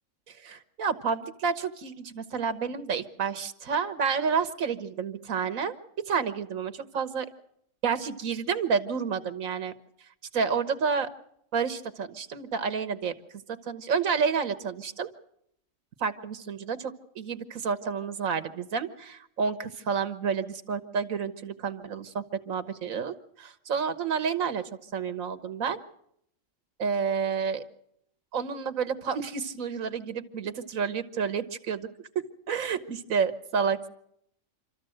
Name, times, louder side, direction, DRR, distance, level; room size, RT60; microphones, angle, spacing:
voice 1, 0.3-5.7 6.0-7.3 7.8-9.7 10.3-11.1 11.5-13.1 13.5-15.1 16.0-24.6 24.9-25.8 26.8-27.6 28.3-31.9 32.5-33.9, right 6 dB, 85° right, 12 dB, 1.6 m, -30 dB
26.5 x 13.5 x 7.8 m, 0.72 s
omnidirectional pair, 1.4 m